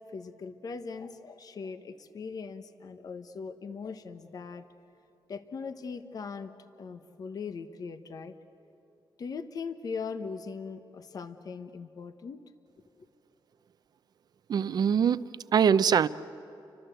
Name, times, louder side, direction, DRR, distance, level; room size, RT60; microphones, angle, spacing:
voice 1, 0.1-4.7 5.3-6.5 6.8-8.3 9.2-12.4, left 5 dB, 50° left, 10 dB, 1.2 m, -40 dB
voice 2, 14.5-16.1, right 7 dB, 55° right, 15 dB, 0.7 m, -23 dB
30.0 x 24.5 x 8.1 m, 2.9 s
wide cardioid pair, 125°, 8 cm